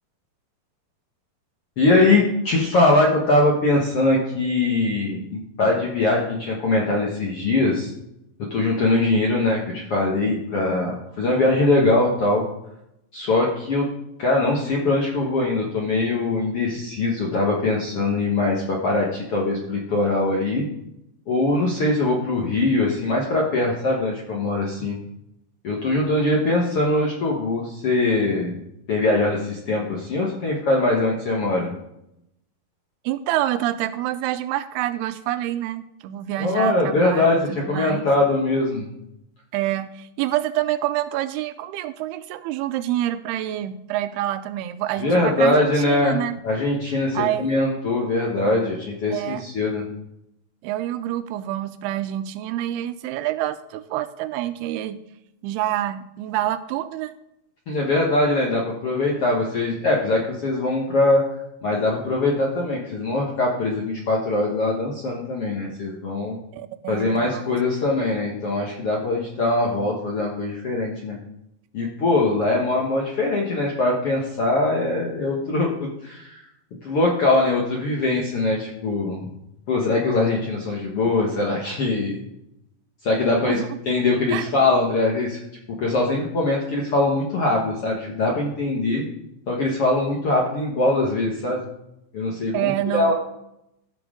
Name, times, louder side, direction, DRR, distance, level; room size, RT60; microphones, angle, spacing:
voice 1, 1.8-7.9 8.5-12.4 13.1-13.9 14.2-20.6 21.3-25.0 25.6-28.6 28.9-31.7 36.4-38.9 45.0-49.8 57.7-61.2 61.6-66.4 66.9-71.2 71.7-76.4 76.8-79.2 79.7-82.2 83.0-83.6 83.8-85.4 85.8-89.0 89.5-91.7 92.1-93.1, left 2 dB, 60° left, -2 dB, 1.5 m, -22 dB
voice 2, 33.1-38.1 39.5-46.4 47.1-47.6 49.1-49.4 50.6-55.0 55.4-57.1 66.5-67.4 83.3-83.8 84.3-84.4 92.5-93.1, right 13 dB, 85° right, 11 dB, 2.6 m, -27 dB
15.0 x 6.0 x 3.7 m, 0.82 s
omnidirectional pair, 4.5 m